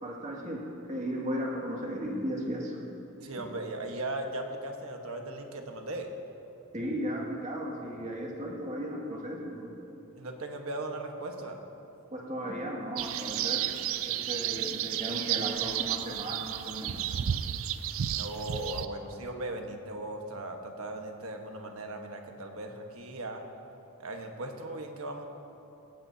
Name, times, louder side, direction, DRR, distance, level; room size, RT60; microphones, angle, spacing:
voice 1, 0.0-2.8 3.4-3.5 6.7-9.8 12.1-13.7 14.0-17.0, equal, 35° right, -2 dB, 2.2 m, -35 dB
voice 2, 3.2-6.1 10.2-11.6 18.1-23.4 24.0-25.2, right 1 dB, 80° right, 3 dB, 1.3 m, -38 dB
sound 1, 13.0-18.9, right 10 dB, 65° right, 0.4 m, -32 dB
17.0 x 16.0 x 2.8 m, 2.9 s
head